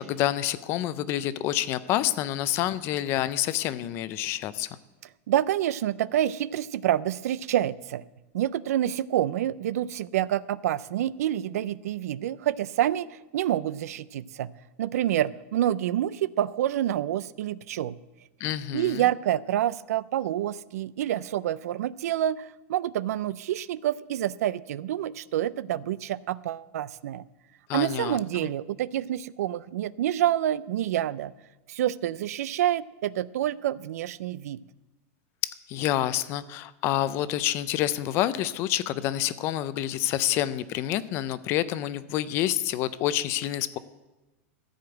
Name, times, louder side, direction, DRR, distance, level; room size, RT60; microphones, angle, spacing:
voice 1, 0.0-4.7 18.4-19.0 27.7-28.2 35.4-43.8, left 13 dB, 30° left, 16 dB, 0.4 m, -28 dB
voice 2, 5.3-8.0 8.3-14.5 14.8-18.0 18.7-27.2 27.7-31.3 31.7-34.6, right 12 dB, 80° right, 19 dB, 0.4 m, -27 dB
14.0 x 5.1 x 7.9 m, 1.1 s
supercardioid pair, 165°, 8 cm